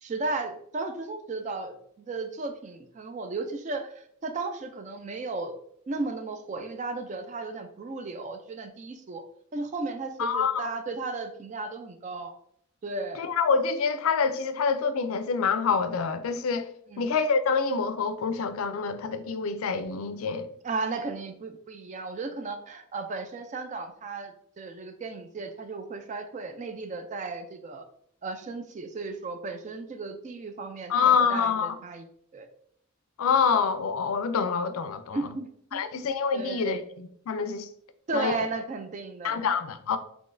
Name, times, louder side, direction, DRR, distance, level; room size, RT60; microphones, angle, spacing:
voice 1, 0.0-5.5 5.9-9.2 9.5-12.3 12.8-13.2 16.9-17.1 20.6-27.8 28.2-32.0 32.3-32.5 35.1-35.8 36.3-36.8 38.1-39.4, right 3 dB, 35° right, 0.3 m, -35 dB
voice 2, 10.2-10.7 13.2-16.7 17.0-20.5 30.9-31.8 33.2-35.3 35.7-37.7 38.1-38.4 39.2-40.0, left 5 dB, 75° left, 0.4 m, -26 dB
3.8 x 2.9 x 2.5 m
head